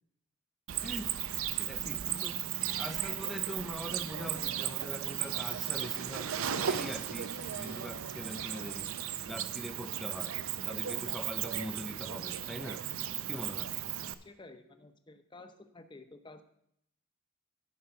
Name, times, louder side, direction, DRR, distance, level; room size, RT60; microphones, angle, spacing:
Cricket, 0.7-14.1, right 10 dB, 75° right, 0.5 m, -36 dB
voice 1, 0.8-1.1 1.5-2.4 2.8-8.9 9.3-10.4 10.7-12.9 13.3-13.7, equal, ahead, 0.3 m, -43 dB
Bird / Bell, 4.3-9.3, left 6 dB, 50° left, 0.9 m, -58 dB
voice 2, 14.2-16.4, left 2 dB, 20° left, 0.7 m, -52 dB
13.0 x 5.0 x 5.7 m
head